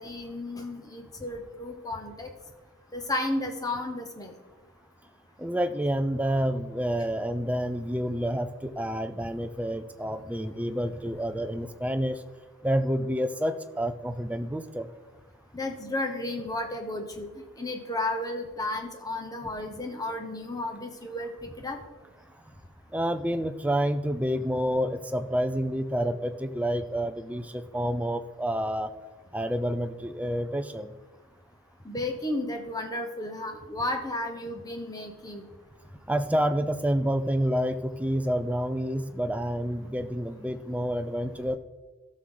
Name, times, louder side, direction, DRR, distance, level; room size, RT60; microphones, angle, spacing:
voice 1, 0.0-2.3 2.9-4.3 15.5-17.3 17.6-21.8 31.8-35.4, left 1 dB, 15° left, 4 dB, 0.9 m, -33 dB
voice 2, 5.4-12.2 12.6-15.0 22.3-22.4 22.9-28.9 29.3-31.0 36.1-41.6, equal, 5° right, 8 dB, 0.4 m, -28 dB
14.0 x 6.4 x 3.9 m, 1.2 s
head